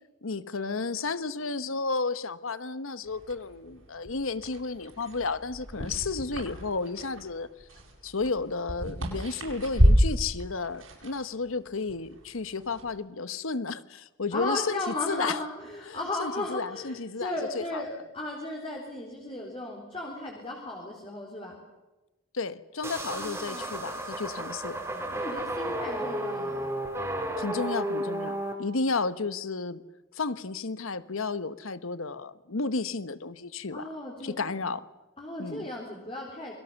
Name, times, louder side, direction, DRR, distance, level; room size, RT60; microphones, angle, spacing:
voice 1, 0.2-7.5 8.0-15.4 15.9-18.0 22.3-24.8 27.4-29.8 30.1-33.9 34.2-34.9 35.4-35.6, left 4 dB, 75° left, 15 dB, 1.1 m, -32 dB
sound 1, 3.1-13.0, equal, 75° right, 7.6 m, -30 dB
voice 2, 14.3-17.9 18.1-21.6 23.1-23.9 24.9-26.8 33.7-34.3 35.2-36.5, left 2 dB, 25° left, -1 dB, 4.1 m, -35 dB
sound 2, 22.8-28.5, right 1 dB, 10° right, 3.9 m, -33 dB
28.5 x 22.5 x 7.1 m, 1.1 s
head